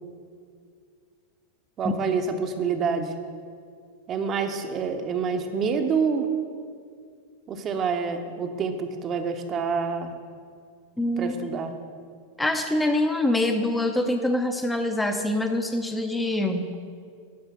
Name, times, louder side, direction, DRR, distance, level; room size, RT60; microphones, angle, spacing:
voice 1, 1.8-3.1 4.1-6.3 7.5-10.1 11.2-11.7, right 5 dB, 30° right, 6 dB, 0.7 m, -27 dB
voice 2, 11.0-11.6 12.4-16.8, left 1 dB, 5° left, 6 dB, 0.6 m, -25 dB
10.5 x 4.8 x 6.2 m, 2.2 s
figure-of-eight pair, 90°, 0 cm